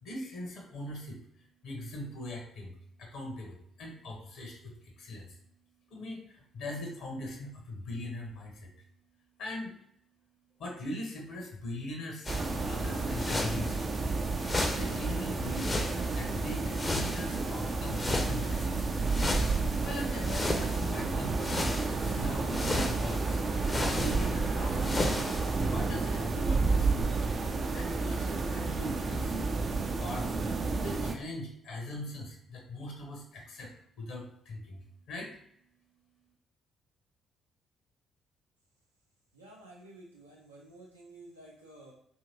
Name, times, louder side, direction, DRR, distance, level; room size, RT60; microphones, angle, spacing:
voice 1, 0.0-1.2 1.6-5.4 5.9-8.7 9.4-9.7 10.6-14.1 14.7-19.2 19.8-21.4 21.9-25.1 25.7-27.1 27.7-29.4 30.0-35.3, left 1 dB, 60° left, 0 dB, 0.7 m, -41 dB
sound 1, 12.3-25.7, left 2 dB, 25° left, 0.5 m, -36 dB
sound 2, 12.3-31.2, right 3 dB, 40° right, 0.4 m, -31 dB
voice 2, 39.4-41.9, right 2 dB, 85° right, -4 dB, 0.6 m, -52 dB
2.8 x 2.7 x 2.8 m, 0.71 s
figure-of-eight pair, 40°, 0 cm